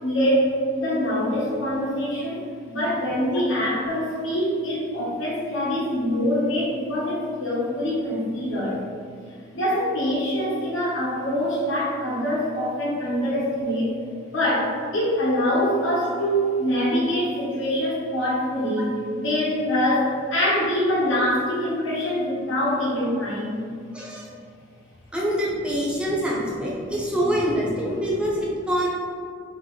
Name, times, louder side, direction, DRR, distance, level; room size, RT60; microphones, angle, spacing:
voice 1, 0.0-8.8 9.3-13.9 14.2-23.6, equal, 80° left, -6 dB, 1.2 m, -24 dB
voice 2, 23.9-24.3 25.1-28.9, equal, 5° right, -5 dB, 0.5 m, -25 dB
3.9 x 3.2 x 3.2 m, 2.2 s
head